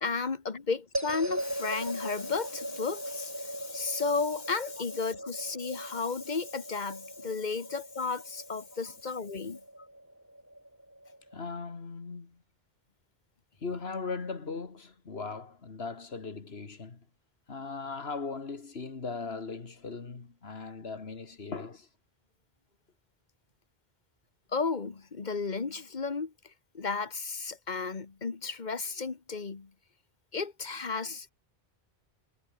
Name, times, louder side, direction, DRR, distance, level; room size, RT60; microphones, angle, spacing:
voice 1, 0.0-9.6 24.5-26.3 26.7-29.7 30.3-31.3, left 4 dB, 45° left, 1.5 m, -33 dB
sound 1, 0.9-11.4, right 1 dB, 15° right, 3.2 m, -40 dB
voice 2, 11.3-12.4 13.6-17.1 17.5-21.9, left 4 dB, 75° left, 2.2 m, -38 dB
omnidirectional pair, 1.1 m